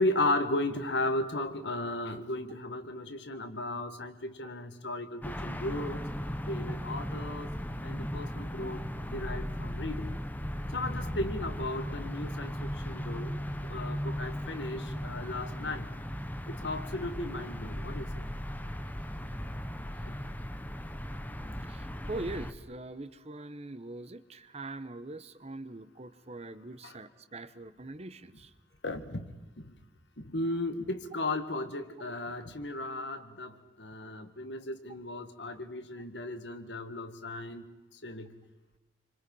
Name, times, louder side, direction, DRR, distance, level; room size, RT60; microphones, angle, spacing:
voice 1, 0.0-6.0 6.5-7.5 7.8-8.8 9.1-10.1 10.7-13.4 13.6-15.9 16.5-18.3 20.0-20.1 26.8-27.0 28.8-29.3 29.6-29.7 30.2-37.6 38.0-38.3, left 2 dB, 75° left, 9 dB, 1.8 m, -35 dB
sound 1, 5.2-22.5, equal, 10° left, 1.2 m, -37 dB
voice 2, 21.7-28.5, right 2 dB, 35° right, 12 dB, 1.1 m, -42 dB
27.5 x 25.5 x 5.5 m, 1.1 s
head